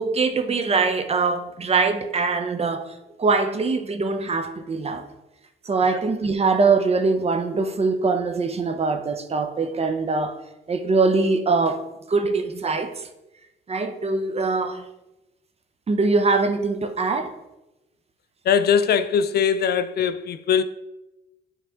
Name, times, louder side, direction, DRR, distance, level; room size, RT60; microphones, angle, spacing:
voice 1, 0.0-5.1 5.6-10.4 10.7-11.8 12.1-13.1 13.7-14.9 15.9-17.4, right 4 dB, 30° right, 0.7 m, -23 dB
voice 2, 18.5-20.6, left 7 dB, 55° left, 0.4 m, -21 dB
9.0 x 3.3 x 3.5 m
cardioid pair, 90°, 20 cm